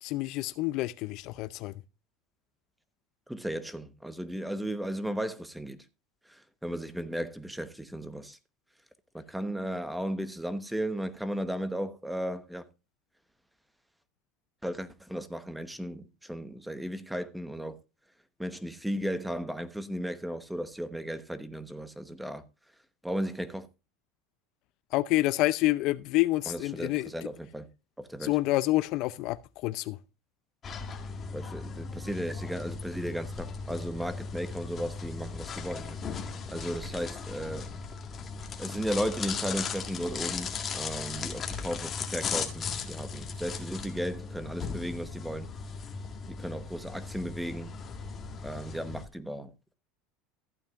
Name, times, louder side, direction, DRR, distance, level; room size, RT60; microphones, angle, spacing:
voice 1, 0.0-1.7 24.9-27.1 28.2-30.0, left 18 dB, 55° left, 0.5 m, -28 dB
voice 2, 3.3-5.8 6.3-8.4 9.1-12.7 14.6-17.8 18.4-22.4 23.0-23.7 26.5-27.7 28.0-28.3 31.3-36.0 36.5-37.7 38.6-45.5 46.3-47.7 48.4-49.7, equal, 5° right, 1.1 m, -35 dB
sound 1, 30.6-49.0, left 5 dB, 30° left, 1.8 m, -37 dB
14.5 x 8.8 x 2.4 m
supercardioid pair, 130°, 0 cm